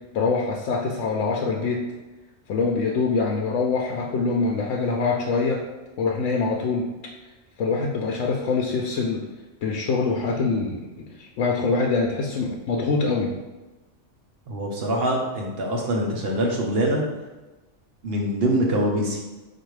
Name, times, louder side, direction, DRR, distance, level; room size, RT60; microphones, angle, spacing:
voice 1, 0.1-1.8 2.5-5.6 6.0-6.9 7.6-9.2 9.6-10.8 11.2-13.3, left 4 dB, 75° left, -1 dB, 0.9 m, -24 dB
voice 2, 14.5-17.0 18.0-19.2, right 1 dB, 55° right, -1 dB, 1.1 m, -24 dB
4.2 x 2.6 x 4.7 m, 1.1 s
omnidirectional pair, 1.3 m